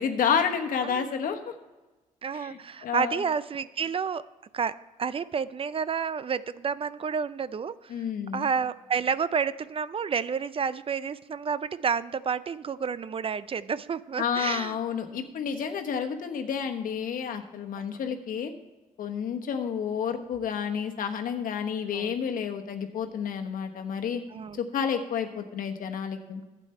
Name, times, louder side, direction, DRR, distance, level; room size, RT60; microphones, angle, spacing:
voice 1, 0.0-1.5 2.3-3.2 7.9-8.5 14.2-18.5 19.0-24.2 24.5-26.4, left 7 dB, 75° left, 5 dB, 1.2 m, -30 dB
voice 2, 2.2-4.2 4.5-7.9 8.3-14.8 21.9-22.1 24.3-24.6, right 6 dB, 40° right, 16 dB, 0.4 m, -30 dB
12.0 x 8.3 x 4.4 m, 1.2 s
cardioid pair, 75°, 15 cm